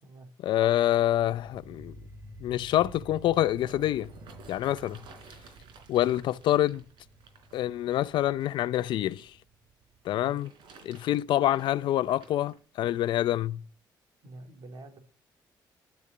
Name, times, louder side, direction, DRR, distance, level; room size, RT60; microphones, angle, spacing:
voice 1, 0.4-1.9 2.4-4.1 4.5-5.0 5.9-6.8 7.5-9.3 10.0-10.5 10.8-13.6, left 13 dB, 75° left, 0.6 m, -26 dB
sound 1, 1.0-11.9, right 1 dB, 35° right, 2.0 m, -51 dB
sound 2, 3.1-9.2 10.1-12.6 13.2-13.3, right 4 dB, 80° right, 3.8 m, -54 dB
voice 2, 14.2-15.0, right 2 dB, 55° right, 3.3 m, -46 dB
12.0 x 6.9 x 8.7 m
cardioid pair, 120°, 8 cm